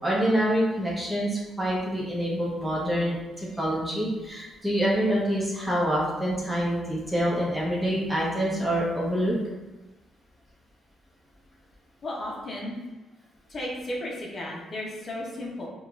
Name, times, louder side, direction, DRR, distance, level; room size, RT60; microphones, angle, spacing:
voice 1, 0.0-9.4, equal, 10° right, -5 dB, 1.1 m, -26 dB
voice 2, 12.0-12.8 13.5-15.7, left 1 dB, 45° left, -4 dB, 0.8 m, -34 dB
5.0 x 2.4 x 2.5 m, 1.1 s
cardioid pair, 90°, 0 cm